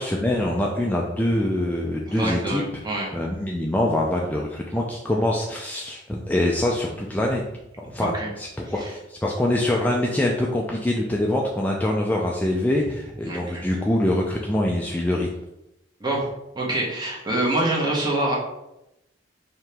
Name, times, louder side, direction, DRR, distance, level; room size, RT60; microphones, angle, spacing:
voice 1, 0.0-2.6 3.1-7.4 7.8-15.3, left 1 dB, 10° left, -2 dB, 0.3 m, -24 dB
voice 2, 2.1-3.1 8.0-8.3 8.8-8.9 13.2-13.6 16.0-16.3 16.5-18.4, right 1 dB, 25° right, -3 dB, 1.1 m, -25 dB
4.6 x 2.9 x 3.4 m, 0.89 s
head